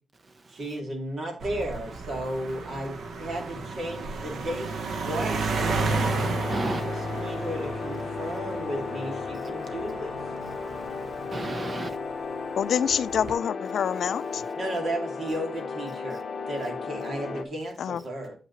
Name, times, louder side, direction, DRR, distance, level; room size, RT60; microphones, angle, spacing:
voice 1, 0.5-5.6 6.6-10.2 14.6-16.2 16.5-18.3, right 1 dB, 60° right, 2.4 m, -34 dB
sound 1, 1.4-12.1 12.9-13.3, right 3 dB, 80° right, 1.1 m, -32 dB
sound 2, 5.5-17.4, left 5 dB, 45° left, 0.9 m, -35 dB
voice 2, 6.1-6.8 10.7-12.0, right 2 dB, 30° right, 0.8 m, -35 dB
voice 3, 12.5-14.4 17.8-18.0, left 8 dB, 85° left, 0.4 m, -26 dB
8.2 x 7.3 x 3.1 m
wide cardioid pair, 160°, 0 cm